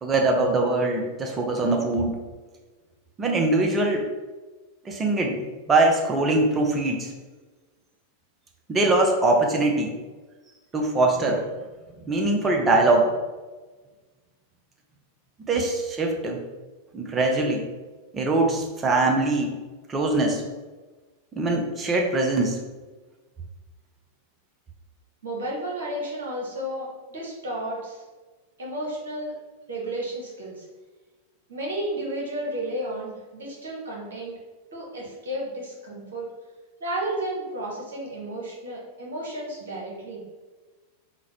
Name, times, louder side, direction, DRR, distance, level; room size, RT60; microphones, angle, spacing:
voice 1, 0.0-2.2 3.2-4.1 4.9-7.1 8.7-9.9 10.7-11.4 12.1-13.1 15.5-16.4 16.9-17.7 18.1-19.5 19.9-20.4 21.3-22.6, right 2 dB, 20° right, 1 dB, 0.6 m, -22 dB
voice 2, 25.2-28.0 28.6-29.3 29.7-30.7 31.5-34.3 34.7-36.3 36.8-40.2, right 1 dB, 60° right, -3 dB, 0.9 m, -32 dB
3.9 x 2.1 x 3.0 m, 1.3 s
figure-of-eight pair, 90°, 0 cm